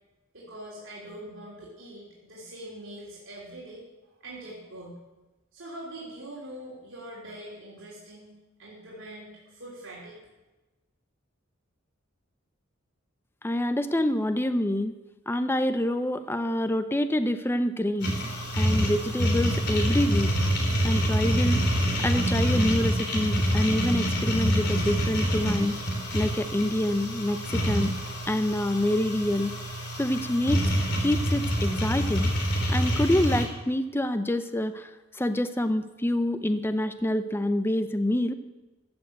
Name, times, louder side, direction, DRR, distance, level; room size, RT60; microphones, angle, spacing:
voice 1, 0.3-3.8 4.2-5.0 5.5-8.3 8.6-10.2, right 1 dB, 70° right, -6 dB, 3.4 m, -43 dB
voice 2, 13.4-14.9 15.3-18.1 18.5-20.3 20.8-21.6 22.0-25.8 26.1-27.9 28.3-29.5 30.0-30.7 31.0-32.3 32.7-38.3, left 1 dB, 10° left, 10 dB, 0.6 m, -26 dB
sound 1, 18.0-33.4, equal, 60° left, 3.4 m, -26 dB
14.5 x 7.0 x 7.9 m, 1.1 s
head